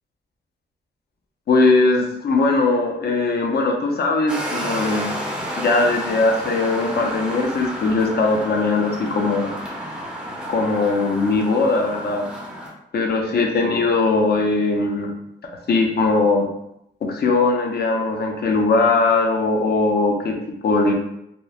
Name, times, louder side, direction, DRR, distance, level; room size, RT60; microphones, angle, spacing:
voice 1, 1.5-5.1 5.6-9.5 10.5-12.3 12.9-15.1 15.4-16.5 17.0-20.3 20.6-20.9, left 3 dB, 55° left, 2 dB, 0.5 m, -20 dB
sound 1, 4.3-12.7, equal, 5° right, 0.5 m, -31 dB
2.9 x 2.0 x 2.3 m, 0.79 s
wide cardioid pair, 125°, 19 cm